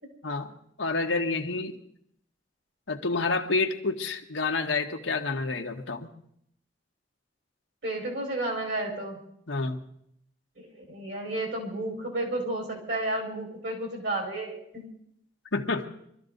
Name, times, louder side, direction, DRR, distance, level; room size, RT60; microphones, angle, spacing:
voice 1, 0.2-0.5 0.8-1.8 2.9-6.1 9.5-9.8 15.5-15.9, left 3 dB, 90° left, 3 dB, 1.5 m, -28 dB
voice 2, 7.8-9.2 10.6-14.9, right 2 dB, 65° right, 0 dB, 5.2 m, -32 dB
23.5 x 13.5 x 4.0 m, 0.70 s
head